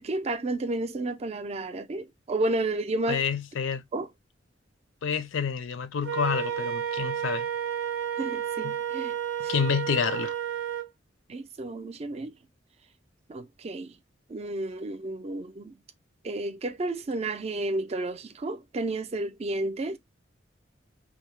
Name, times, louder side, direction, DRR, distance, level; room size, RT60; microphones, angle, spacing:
voice 1, 0.0-3.2 3.9-4.1 8.2-9.1 9.4-9.6 11.3-12.3 13.3-14.0 14.3-15.8 16.2-20.0, right 2 dB, 35° right, 0.4 m, -31 dB
voice 2, 3.1-3.8 5.0-7.5 8.6-8.8 9.5-10.3, left 6 dB, 75° left, 0.4 m, -28 dB
Wind instrument woodwind instrument, 6.0-10.9, right 9 dB, 90° right, 0.7 m, -31 dB
2.8 x 2.0 x 3.0 m
head